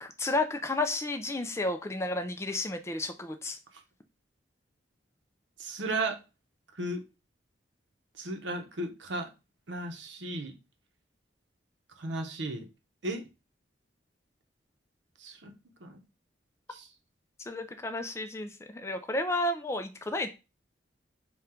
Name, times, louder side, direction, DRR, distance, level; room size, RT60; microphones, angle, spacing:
voice 1, 0.0-3.6 17.5-20.3, left 2 dB, 15° left, 0.3 m, -32 dB
voice 2, 5.6-6.2 6.8-7.0 8.2-9.3 9.7-10.5 12.0-12.6 13.0-13.3 15.2-15.5 15.8-16.0 16.7-16.9, right 2 dB, 80° right, 0.8 m, -35 dB
3.7 x 2.3 x 4.3 m
head